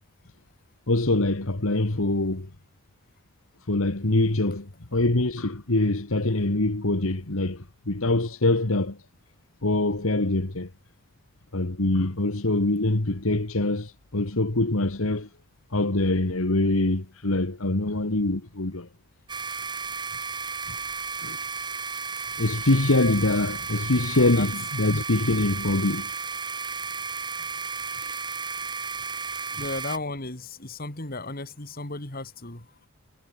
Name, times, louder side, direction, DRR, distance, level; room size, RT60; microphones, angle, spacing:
voice 1, 0.9-2.5 3.7-9.0 9.6-10.7 11.5-15.3 15.7-18.9 20.7-20.8 21.2-21.4 22.4-26.1 28.0-28.2, left 2 dB, 70° left, 1.8 m, -24 dB
sound 1, 19.3-30.0, right 5 dB, 20° right, 2.1 m, -33 dB
voice 2, 29.6-32.7, left 2 dB, 45° left, 3.3 m, -35 dB
head